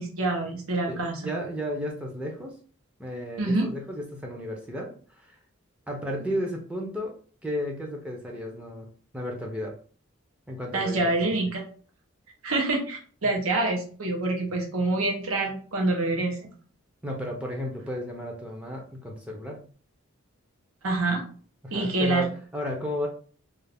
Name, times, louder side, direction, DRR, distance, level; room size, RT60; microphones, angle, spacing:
voice 1, 0.0-1.3 3.4-3.6 10.7-11.6 12.4-16.5 20.8-21.2 21.7-22.3, right 2 dB, 80° right, 1 dB, 0.8 m, -26 dB
voice 2, 0.9-2.5 3.0-5.4 5.9-7.1 7.4-8.9 9.1-9.7 10.5-11.3 13.2-13.3 17.0-19.6 21.6-23.1, equal, 5° right, -1 dB, 0.5 m, -33 dB
2.4 x 2.4 x 3.4 m, 0.43 s
head